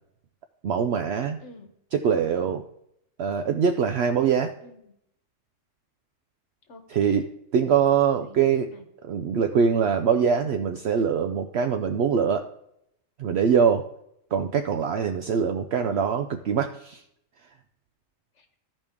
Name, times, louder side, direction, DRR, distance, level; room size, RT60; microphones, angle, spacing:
voice 1, 0.6-1.4 1.9-2.6 3.2-4.5 6.9-7.3 7.5-8.7 9.0-12.5 13.2-13.9 14.3-17.0, right 7 dB, 65° right, 6 dB, 0.7 m, -23 dB
voice 2, 1.4-1.7 4.6-4.9 6.7-7.3 7.7-7.9 8.2-8.8 15.7-16.0 18.4-18.6, left 3 dB, 65° left, 6 dB, 1.3 m, -48 dB
14.0 x 5.1 x 3.5 m, 0.76 s
omnidirectional pair, 1.3 m